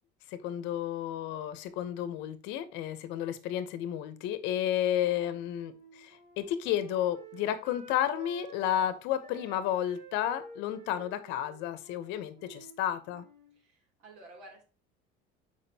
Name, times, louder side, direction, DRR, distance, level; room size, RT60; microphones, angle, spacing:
voice 1, 0.3-13.3, left 11 dB, 60° left, 0.8 m, -32 dB
Wind instrument woodwind instrument, 5.0-8.9 9.2-12.8 13.0-13.6, right 3 dB, 30° right, 2.0 m, -51 dB
voice 2, 13.6-14.6, right 2 dB, 80° right, 2.8 m, -52 dB
7.1 x 4.9 x 2.8 m
cardioid pair, 180°, 21 cm